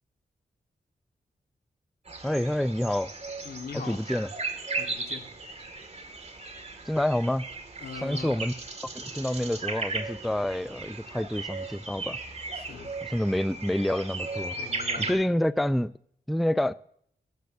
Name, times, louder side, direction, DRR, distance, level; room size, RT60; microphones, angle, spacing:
sound 1, 2.1-15.1, right 3 dB, 40° right, 2.0 m, -36 dB
voice 1, 2.2-3.1 3.7-4.3 6.9-7.4 8.0-8.5 9.0-12.2 13.1-14.6 15.0-15.9 16.3-16.7, left 1 dB, ahead, 0.3 m, -27 dB
voice 2, 3.4-4.0 4.8-5.3 7.8-8.4 12.6-13.0 14.6-15.4, left 5 dB, 80° left, 1.5 m, -41 dB
14.5 x 13.0 x 2.6 m
wide cardioid pair, 80°, 16 cm